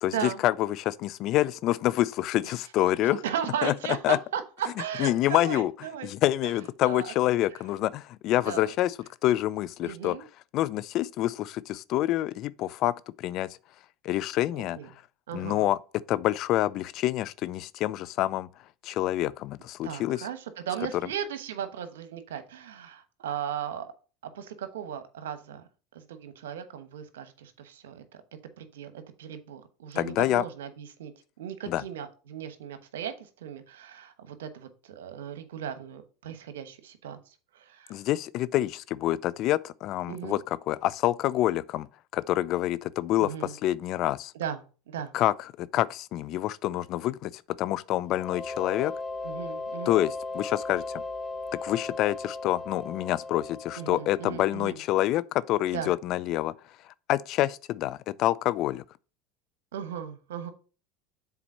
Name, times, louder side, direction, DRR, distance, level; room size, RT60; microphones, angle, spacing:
voice 1, 0.0-3.2 3.6-3.8 4.0-4.2 5.0-5.7 6.0-9.0 9.2-10.2 10.5-13.5 14.0-14.8 15.3-15.8 16.1-18.5 18.8-20.3 30.0-30.4 31.7-31.8 37.9-44.3 45.1-48.9 49.9-51.0 51.6-56.5 57.1-58.8, left 14 dB, 55° left, 0.4 m, -27 dB
voice 2, 3.1-6.1 6.8-7.1 8.5-8.7 9.8-10.2 14.8-14.9 15.3-15.6 19.8-23.9 24.3-25.6 25.9-28.2 28.6-28.9 29.2-31.1 31.4-33.1 33.4-37.2 37.5-38.0 40.1-40.4 43.2-43.5 44.4-44.6 44.9-45.1 49.2-49.9 53.8-54.8 55.7-55.9 59.7-60.5, right 9 dB, 80° right, 1.1 m, -36 dB
sound 1, 48.0-54.7, left 3 dB, 30° left, 1.3 m, -37 dB
7.2 x 4.1 x 5.4 m
hypercardioid pair, 85°, 0 cm